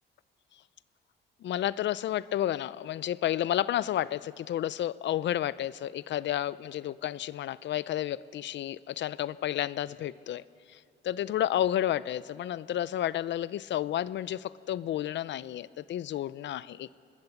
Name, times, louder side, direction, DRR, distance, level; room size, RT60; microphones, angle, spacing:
voice 1, 1.4-10.4 10.7-17.0, left 12 dB, 65° left, 18 dB, 0.6 m, -31 dB
26.0 x 20.5 x 7.2 m, 2.4 s
cardioid pair, 90°, 20 cm